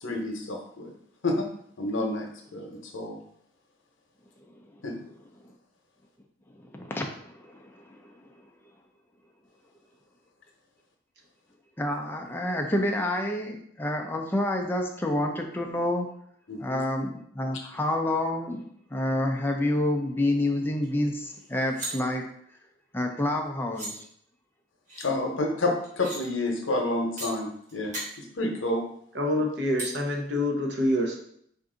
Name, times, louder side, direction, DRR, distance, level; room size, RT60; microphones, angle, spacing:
voice 1, 0.0-0.9 1.2-1.4 1.8-3.2 4.8-4.9 16.5-16.8 25.0-28.0 28.4-28.8, left 2 dB, 80° left, 2 dB, 0.8 m, -29 dB
voice 2, 6.6-8.1 11.8-16.1 16.6-18.6 18.9-22.3 22.9-24.0, left 1 dB, 10° left, 2 dB, 0.5 m, -28 dB
sound 1, 20.8-20.9 21.3-21.9 23.3-23.4 23.7-23.9 24.9-25.1 25.8-26.2 27.2-27.3 27.7-28.1 29.8-29.9, right 1 dB, 40° right, 1.5 m, -36 dB
voice 3, 29.1-31.2, left 1 dB, 60° right, 1 dB, 0.8 m, -26 dB
4.6 x 2.6 x 3.8 m, 0.68 s
head